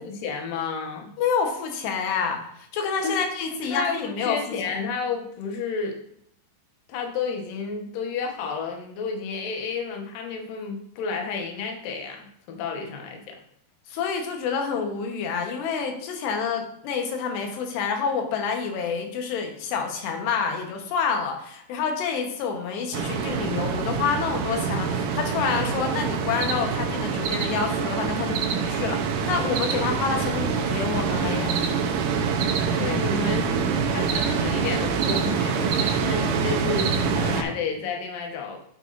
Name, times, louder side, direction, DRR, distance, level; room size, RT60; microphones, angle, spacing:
voice 1, 0.0-1.1 3.0-3.3 3.5-6.0 6.9-13.4 32.7-38.6, left 5 dB, 65° left, 2 dB, 2.6 m, -31 dB
voice 2, 1.2-4.7 13.9-31.7, left 6 dB, 85° left, 4 dB, 3.3 m, -28 dB
sound 1, 22.9-37.4, right 6 dB, 85° right, 1.8 m, -25 dB
9.9 x 7.0 x 2.6 m, 0.69 s
omnidirectional pair, 4.8 m